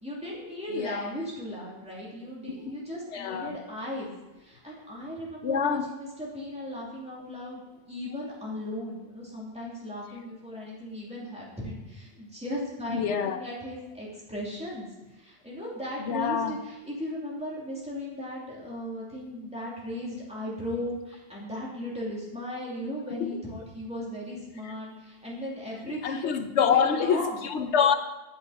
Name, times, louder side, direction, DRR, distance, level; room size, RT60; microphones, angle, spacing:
voice 1, 0.0-4.1 4.4-7.6 7.9-27.4, left 1 dB, 5° right, -6 dB, 2.7 m, -37 dB
voice 2, 0.7-1.1 2.5-2.8 3.1-3.6 5.4-5.9 12.9-13.4 16.0-16.6 23.2-23.3 24.6-24.7 26.0-27.9, left 7 dB, 90° left, 8 dB, 1.1 m, -26 dB
8.8 x 7.9 x 4.1 m, 1.1 s
omnidirectional pair, 1.1 m